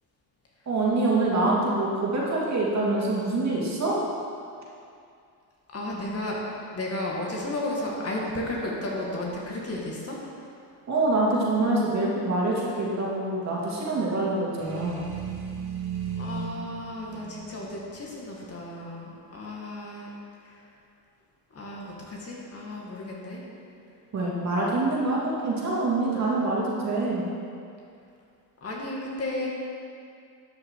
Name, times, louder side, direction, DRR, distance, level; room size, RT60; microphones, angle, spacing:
voice 1, 0.7-4.0 10.9-15.1 24.1-27.2, right 2 dB, 35° right, -5 dB, 2.8 m, -25 dB
voice 2, 5.7-6.4 6.7-10.2 13.6-13.8 16.2-20.1 20.4-20.7 21.5-23.4 28.6-29.5, left 1 dB, 30° left, -3 dB, 2.0 m, -33 dB
sound 1, 14.6-18.5, right 6 dB, 50° right, 2.6 m, -36 dB
12.5 x 6.4 x 4.7 m, 2.4 s
supercardioid pair, 100°, 47 cm